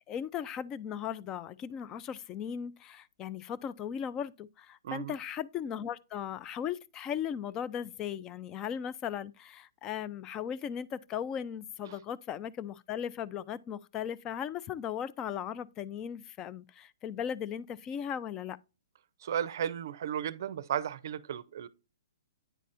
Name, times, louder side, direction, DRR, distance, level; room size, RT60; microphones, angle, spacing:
voice 1, 0.1-18.6, left 8 dB, 25° left, 0.3 m, -37 dB
voice 2, 4.8-5.1 11.8-12.0 19.2-21.7, right 9 dB, 60° right, 0.5 m, -34 dB
9.2 x 4.1 x 2.6 m
hypercardioid pair, 135°, 2 cm